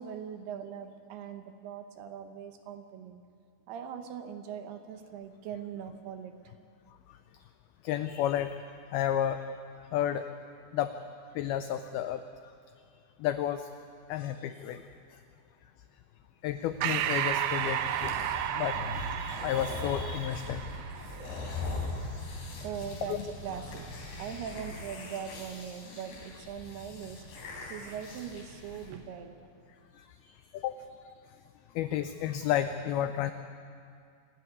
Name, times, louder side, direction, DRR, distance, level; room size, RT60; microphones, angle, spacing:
voice 1, 0.0-3.2 3.7-6.5 22.6-23.9 24.2-27.3 27.7-29.3, right 8 dB, 70° right, 7 dB, 2.8 m, -41 dB
voice 2, 7.8-8.6 8.9-9.4 9.9-10.3 10.7-11.0 11.4-12.2 13.2-13.7 14.1-14.8 16.4-20.7 30.0-30.8 31.8-33.3, left 11 dB, 90° left, 10 dB, 2.1 m, -32 dB
sound 1, 16.5-28.9, left 2 dB, 75° left, 5.7 m, -41 dB
Breathing, 16.8-21.7, right 11 dB, 90° right, 2.2 m, -33 dB
26.5 x 13.0 x 9.4 m, 2.3 s
omnidirectional pair, 5.2 m